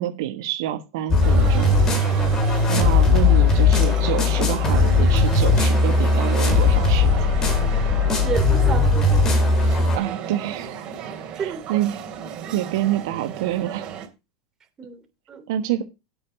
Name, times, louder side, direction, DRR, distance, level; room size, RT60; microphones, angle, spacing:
voice 1, 0.0-1.8 2.7-7.2 9.9-10.8 11.3-12.0 12.3-13.9 15.5-15.8, right 12 dB, 75° right, 1.4 m, -27 dB
sound 1, 1.1-10.0, left 3 dB, 30° left, 3.9 m, -18 dB
sound 2, 1.2-14.1, right 8 dB, 45° right, 3.1 m, -34 dB
voice 2, 8.2-9.5 11.4-11.6 14.8-15.5, right 6 dB, 30° right, 2.9 m, -31 dB
8.4 x 6.6 x 6.4 m
hypercardioid pair, 100°, 2 cm